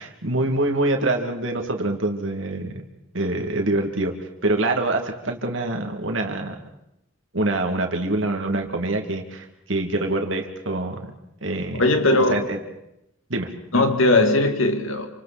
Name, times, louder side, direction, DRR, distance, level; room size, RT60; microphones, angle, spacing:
voice 1, 0.0-2.8 3.1-4.1 4.4-6.5 7.3-11.1 11.4-11.9 12.3-12.6 13.3-13.5, right 2 dB, 70° right, 2.6 m, -25 dB
voice 2, 11.8-12.4 13.7-15.1, left 2 dB, 85° left, 2.3 m, -19 dB
28.0 x 26.5 x 4.4 m
head